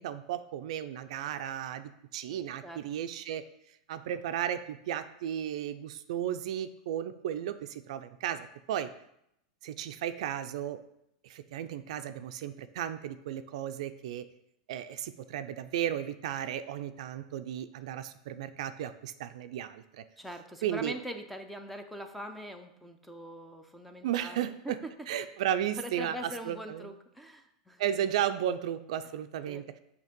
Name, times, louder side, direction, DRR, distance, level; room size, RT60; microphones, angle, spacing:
voice 1, 0.0-3.4 3.9-8.9 9.6-10.8 11.2-14.2 14.7-20.0 20.6-20.9 24.0-24.8 25.1-26.9 27.8-29.6, right 10 dB, 70° right, 10 dB, 0.4 m, -34 dB
voice 2, 20.2-24.9 25.7-27.8 29.5-29.6, equal, ahead, 6 dB, 0.5 m, -42 dB
6.4 x 2.8 x 5.2 m, 0.78 s
hypercardioid pair, 130°, 4 cm